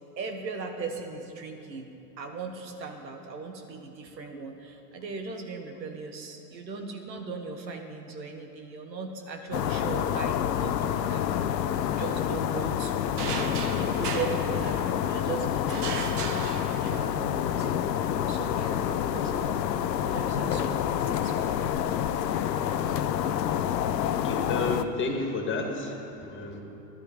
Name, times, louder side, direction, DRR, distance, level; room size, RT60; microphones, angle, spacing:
voice 1, 0.2-1.9 2.2-11.5 11.8-13.4 13.8-16.4 16.7-19.6 20.1-21.6, right 4 dB, 85° right, 5 dB, 1.6 m, -38 dB
sound 1, 9.5-24.8, left 9 dB, 75° left, 0.7 m, -28 dB
sound 2, 13.2-15.2 15.7-17.2, right 5 dB, 65° right, 1.3 m, -36 dB
voice 2, 24.1-26.6, left 3 dB, 25° left, 2 dB, 1.9 m, -32 dB
12.0 x 12.0 x 5.0 m, 2.9 s
hypercardioid pair, 100°, 50 cm